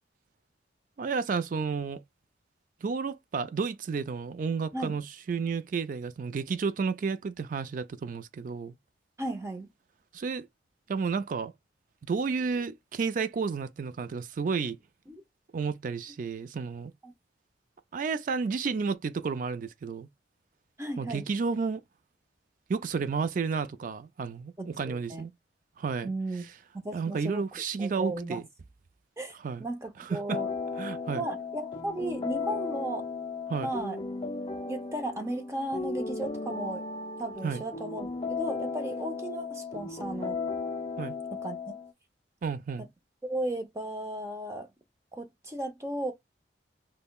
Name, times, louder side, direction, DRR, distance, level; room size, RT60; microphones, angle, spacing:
voice 1, 1.0-2.0 2.8-8.8 10.1-10.5 10.9-11.5 12.0-14.8 15.5-16.9 17.9-20.1 21.0-21.8 22.7-25.3 25.8-26.1 26.9-28.4 29.4-29.7 30.0-30.4 30.8-31.2 33.5-33.7 37.4-37.6 41.0-41.1 42.4-42.9, right 5 dB, 45° right, 0.3 m, -31 dB
voice 2, 9.2-9.7 15.1-15.2 17.0-17.1 20.8-21.3 24.6-25.2 26.0-26.4 26.8-27.4 27.8-28.4 29.2-30.5 31.1-33.1 33.6-34.0 34.7-36.8 37.2-40.4 41.4-41.8 42.8-42.9 43.2-44.7 45.1-46.1, right 1 dB, 15° right, 0.7 m, -35 dB
sound 1, 30.3-41.9, left 4 dB, 30° left, 0.4 m, -35 dB
5.3 x 2.1 x 2.3 m
head